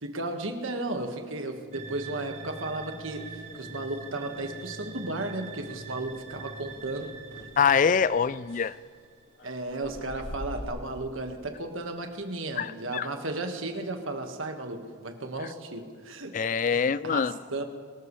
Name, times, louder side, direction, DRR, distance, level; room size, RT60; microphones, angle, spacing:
voice 1, 0.0-7.2 9.4-16.4 16.7-17.6, right 2 dB, 70° right, 5 dB, 1.6 m, -34 dB
sound 1, 1.7-9.2, right 4 dB, 35° right, 1.3 m, -44 dB
sound 2, 2.6-4.0 4.3-4.7 5.0-5.2 5.6-10.7, equal, 65° left, 2.1 m, -46 dB
voice 2, 7.6-8.7 12.6-13.1 16.3-17.3, left 6 dB, 40° left, 17 dB, 0.3 m, -24 dB
24.0 x 14.0 x 3.3 m, 2.1 s
head